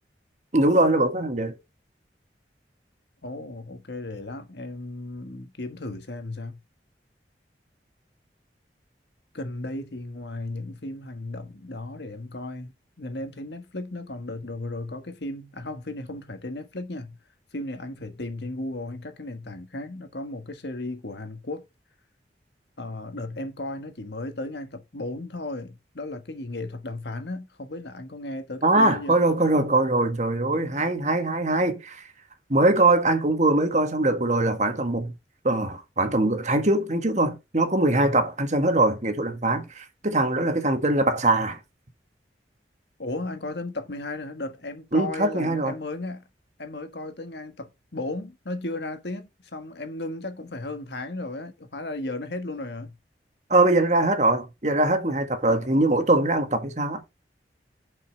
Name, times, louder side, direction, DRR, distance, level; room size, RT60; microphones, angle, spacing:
voice 1, 0.5-1.5 28.6-32.0 32.5-35.1 35.4-41.6 44.9-45.7 53.5-57.0, right 2 dB, 40° right, 1.6 m, -22 dB
voice 2, 3.2-6.6 9.3-17.2 17.5-21.6 22.8-29.2 43.0-46.2 46.6-53.0 55.5-55.8, left 2 dB, 75° left, 1.5 m, -35 dB
7.4 x 5.5 x 6.0 m
head